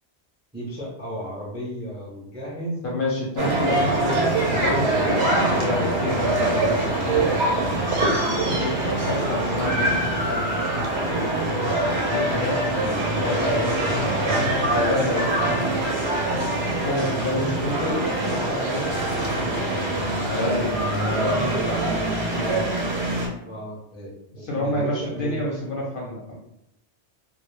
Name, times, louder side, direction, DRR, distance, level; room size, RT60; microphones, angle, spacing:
voice 1, 0.5-2.8 8.3-8.6 23.4-25.4, equal, 15° right, -5 dB, 0.3 m, -34 dB
voice 2, 2.8-7.3 8.5-11.3 12.0-15.7 16.8-19.8 20.3-22.8 24.4-26.3, left 1 dB, 60° left, -3 dB, 0.6 m, -29 dB
sound 1, 3.4-23.3, right 1 dB, 65° right, 0.8 m, -24 dB
2.2 x 2.0 x 3.0 m, 0.79 s
omnidirectional pair, 1.2 m